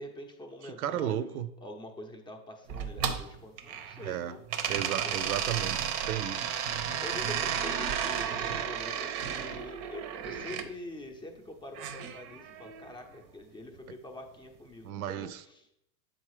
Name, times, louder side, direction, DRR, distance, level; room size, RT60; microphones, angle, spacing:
voice 1, 0.0-4.4 5.0-5.4 7.0-15.6, left 1 dB, 10° left, 3 dB, 0.7 m, -45 dB
voice 2, 0.6-1.5 4.0-4.4 4.7-6.6 14.8-15.4, right 11 dB, 85° right, 14 dB, 0.6 m, -34 dB
sound 1, 2.7-4.1 4.5-10.7 11.7-12.9, right 8 dB, 40° right, 0.7 m, -33 dB
7.5 x 4.0 x 4.8 m, 0.80 s
supercardioid pair, 135°, 42 cm